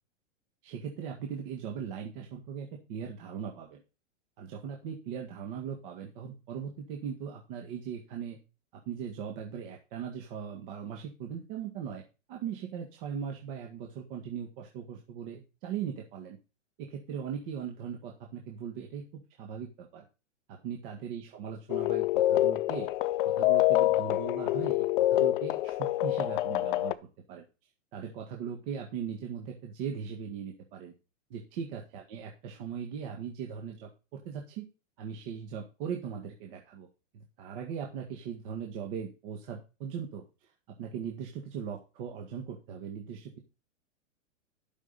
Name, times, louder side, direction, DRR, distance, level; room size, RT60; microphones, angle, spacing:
voice 1, 0.6-3.8 4.4-8.4 8.9-12.0 12.3-16.4 16.8-20.0 20.5-22.9 23.2-26.9 27.3-27.4 27.9-30.9 31.3-34.7 35.0-36.9 37.1-40.2 40.8-43.4, right 7 dB, 45° right, 1 dB, 1.9 m, -39 dB
sound 1, 21.7-26.9, left 15 dB, 45° left, 0.6 m, -26 dB
11.5 x 6.3 x 4.2 m, 0.31 s
hypercardioid pair, 135°, 38 cm